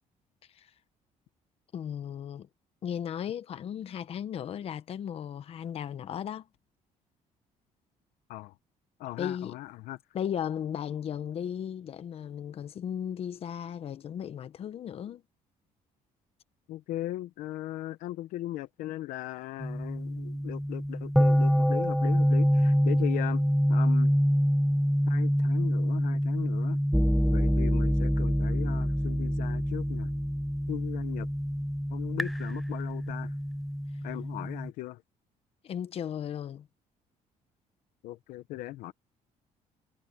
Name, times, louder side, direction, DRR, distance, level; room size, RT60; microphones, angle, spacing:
voice 1, 1.7-2.5 2.8-6.5 9.2-9.5 10.1-15.2 35.6-36.7, left 9 dB, 45° left, 1.1 m, -36 dB
voice 2, 9.0-10.0 16.7-23.4 23.7-24.1 25.1-26.8 27.3-30.1 30.7-31.3 31.9-33.3 34.0-35.0 38.0-38.9, left 16 dB, 85° left, 1.0 m, -38 dB
sound 1, 19.6-34.7, equal, ahead, 0.3 m, -26 dB
cardioid pair, 135°, 13 cm